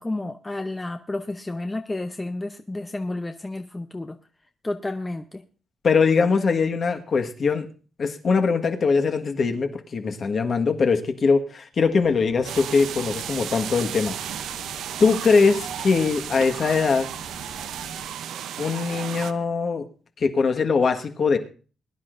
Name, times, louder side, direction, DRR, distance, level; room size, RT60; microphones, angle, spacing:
voice 1, 0.0-4.2 4.6-5.4, left 2 dB, 15° left, 6 dB, 0.7 m, -31 dB
voice 2, 5.8-7.7 8.0-14.3 15.0-17.1 18.6-19.8 20.2-21.4, left 5 dB, 45° left, 5 dB, 1.5 m, -22 dB
Bus, 11.9-18.1, left 4 dB, 75° left, 3.1 m, -47 dB
sound 1, 12.4-19.3, right 9 dB, 85° right, 0.7 m, -34 dB
21.5 x 10.5 x 2.6 m, 0.38 s
cardioid pair, 120°, 0 cm